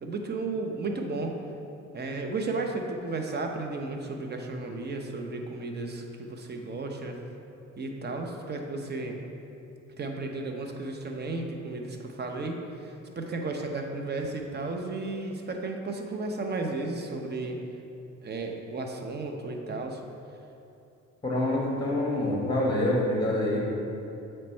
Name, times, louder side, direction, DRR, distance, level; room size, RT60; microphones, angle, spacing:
voice 1, 0.0-1.3 1.9-7.2 7.8-9.2 10.0-17.6 18.2-20.0, right 3 dB, 35° right, 3 dB, 0.7 m, -34 dB
voice 2, 21.2-23.8, left 1 dB, 15° left, -4 dB, 1.1 m, -26 dB
7.4 x 3.2 x 4.4 m, 2.7 s
cardioid pair, 90°, 30 cm